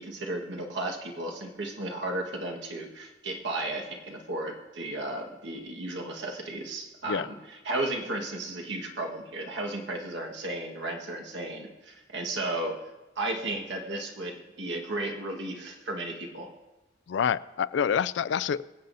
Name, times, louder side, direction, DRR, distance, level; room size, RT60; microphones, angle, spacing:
voice 1, 0.0-12.8 13.1-16.5, right 2 dB, 85° right, 0 dB, 1.5 m, -34 dB
voice 2, 17.1-18.6, left 7 dB, 85° left, 16 dB, 0.3 m, -27 dB
23.5 x 8.0 x 2.7 m, 1.1 s
head